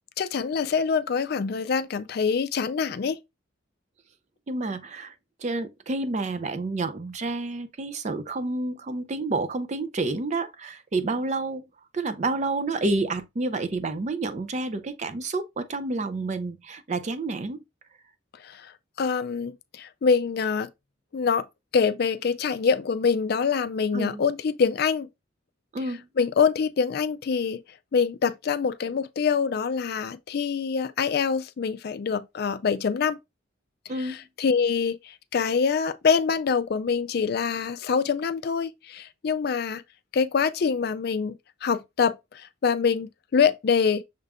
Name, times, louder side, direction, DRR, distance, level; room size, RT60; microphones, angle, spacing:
voice 1, 0.2-3.2 18.4-18.7 19.0-20.7 21.1-21.4 21.7-25.1 26.2-27.6 27.9-33.2 34.0-39.8 40.1-44.0, left 6 dB, 55° left, 0.4 m, -25 dB
voice 2, 4.5-5.1 5.4-11.7 11.9-17.6 23.9-24.2 25.7-26.1 33.9-34.2, right 2 dB, 35° right, 0.4 m, -29 dB
6.4 x 2.4 x 3.4 m
head